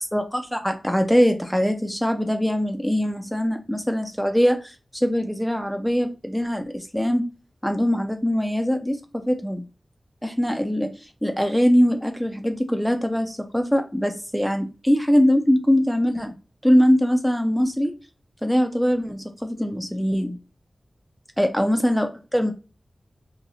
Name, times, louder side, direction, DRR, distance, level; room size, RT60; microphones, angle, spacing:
voice 1, 0.1-7.2 7.6-9.6 10.2-10.9 11.2-16.3 16.6-17.9 18.4-20.4 21.4-22.5, equal, ahead, 5 dB, 0.5 m, -22 dB
4.1 x 2.9 x 2.7 m, 0.32 s
wide cardioid pair, 65°, 0 cm